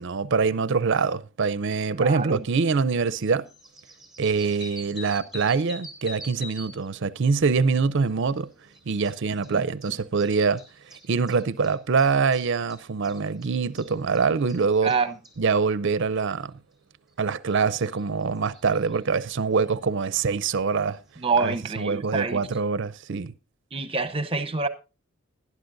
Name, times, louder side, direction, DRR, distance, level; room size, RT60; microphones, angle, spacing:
voice 1, 0.0-3.5 4.2-8.5 8.9-10.6 11.1-14.9 15.4-16.5 17.2-21.0 21.4-23.3, right 5 dB, 55° right, 0.5 m, -24 dB
voice 2, 1.9-2.4 9.5-9.6 14.8-15.1 21.2-22.5 23.7-24.7, right 4 dB, 25° right, 0.9 m, -27 dB
sound 1, 2.6-2.7 3.0-6.9 7.2-15.4 17.1-17.2 17.5-19.0 19.8-19.9 21.7-21.8, left 1 dB, ahead, 3.1 m, -46 dB
19.5 x 11.0 x 2.6 m
head